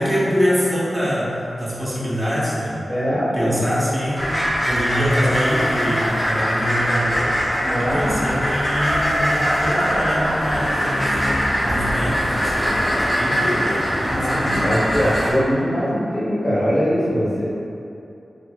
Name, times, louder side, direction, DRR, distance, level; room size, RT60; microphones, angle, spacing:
voice 1, 0.0-2.8 3.3-4.4 4.7-7.3 7.8-12.8 13.2-14.6, equal, 20° right, -8 dB, 0.8 m, -24 dB
voice 2, 2.9-3.6 7.6-8.1 14.0-17.4, equal, 50° left, -8 dB, 1.0 m, -22 dB
sound 1, 4.2-15.3, equal, 20° left, 0.7 m, -22 dB
sound 2, 5.2-7.0 8.6-10.4, equal, 70° right, 1.4 m, -39 dB
4.4 x 2.6 x 2.3 m, 2.7 s
wide cardioid pair, 75°, 0 cm